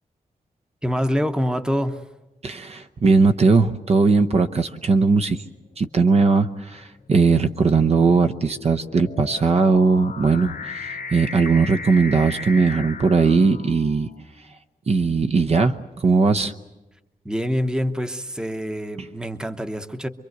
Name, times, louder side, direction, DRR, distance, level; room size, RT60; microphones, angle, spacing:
voice 1, 0.8-2.0 17.2-20.1, equal, 5° right, 0.9 m, -25 dB
voice 2, 2.4-5.4 5.8-14.1 14.9-16.5, right 4 dB, 45° right, 0.8 m, -19 dB
sound 1, 4.7-5.1 5.9-14.1, left 4 dB, 75° left, 1.0 m, -37 dB
26.0 x 23.5 x 8.0 m
wide cardioid pair, 145°, 15 cm